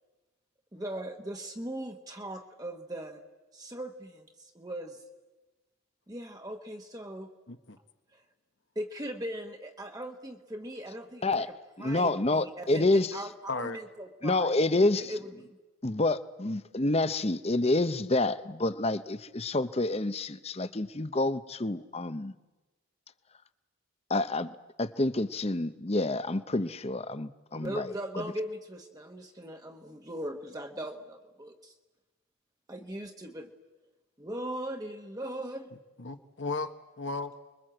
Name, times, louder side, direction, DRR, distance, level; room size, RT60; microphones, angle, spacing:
voice 1, 0.7-3.2 3.5-5.0 6.1-7.3 8.1-8.2 8.7-11.4 11.8-14.5 14.9-15.6 27.5-31.7 32.7-33.5 34.2-35.7, right 1 dB, 15° right, 3 dB, 1.2 m, -39 dB
voice 2, 11.8-13.3 14.2-15.5 15.8-22.4 24.1-28.3, left 2 dB, 30° left, 12 dB, 0.8 m, -28 dB
voice 3, 13.5-13.8 36.0-37.4, left 3 dB, 60° left, 7 dB, 1.3 m, -35 dB
29.5 x 22.0 x 7.8 m, 1.2 s
head